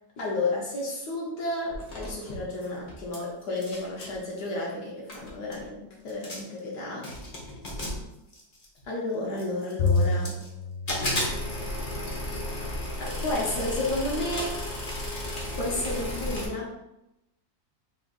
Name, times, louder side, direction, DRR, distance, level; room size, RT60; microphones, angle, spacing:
voice 1, 0.2-7.2 8.8-10.4 13.0-14.6 15.6-16.7, left 2 dB, 70° left, -4 dB, 1.3 m, -32 dB
sound 1, 1.7-3.2 3.4-4.2 4.8-4.9 5.1-5.6 6.1-6.6 7.0-8.8 9.4-10.5 10.9-16.5, left 1 dB, 35° left, 0.6 m, -34 dB
Bowed string instrument, 9.8-12.3, left 3 dB, 85° left, 1.4 m, -29 dB
3.6 x 2.4 x 3.9 m, 0.87 s
omnidirectional pair, 1.9 m